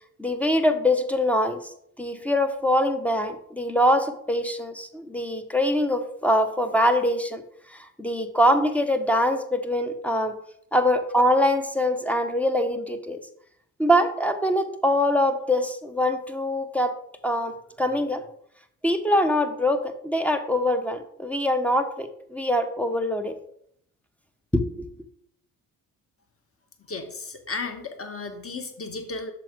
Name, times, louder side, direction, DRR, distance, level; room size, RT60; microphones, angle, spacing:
voice 1, 0.2-1.6 2.0-7.4 7.7-10.3 10.7-13.2 13.8-16.9 17.2-17.5 17.8-18.2 18.8-23.3 24.5-24.9, left 1 dB, 5° left, 6 dB, 1.0 m, -23 dB
voice 2, 26.9-29.3, left 3 dB, 30° left, 5 dB, 1.7 m, -34 dB
7.6 x 6.7 x 3.7 m, 0.69 s
figure-of-eight pair, 45°, 45 cm